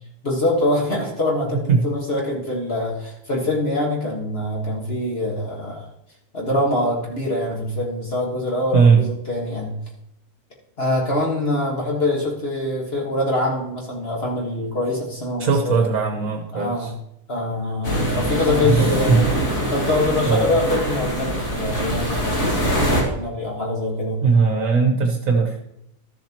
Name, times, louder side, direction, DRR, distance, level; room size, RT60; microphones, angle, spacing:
voice 1, 0.2-5.9 6.3-9.8 10.8-15.8 16.5-16.9 17.3-19.3 19.7-24.2, left 1 dB, 40° left, -2 dB, 1.7 m, -24 dB
voice 2, 15.4-16.9 18.6-19.2 20.2-20.5 24.2-25.6, right 5 dB, 60° right, 3 dB, 1.3 m, -18 dB
sound 1, 17.8-23.0, equal, 55° left, 2.4 m, -23 dB
13.0 x 7.2 x 2.9 m, 0.79 s
omnidirectional pair, 1.7 m